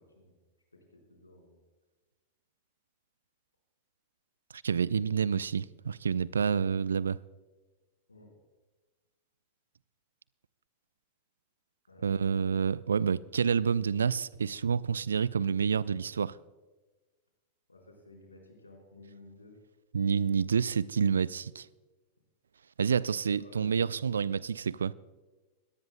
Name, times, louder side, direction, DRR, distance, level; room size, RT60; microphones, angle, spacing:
voice 1, 0.7-1.6 8.1-8.3 11.9-12.5 17.7-19.5 23.3-23.9, left 2 dB, 80° left, 4.3 m, -55 dB
voice 2, 4.5-7.2 12.0-16.4 19.9-21.7 22.8-24.9, right 6 dB, 70° right, 0.3 m, -28 dB
23.0 x 18.0 x 2.2 m
figure-of-eight pair, 90°, 0 cm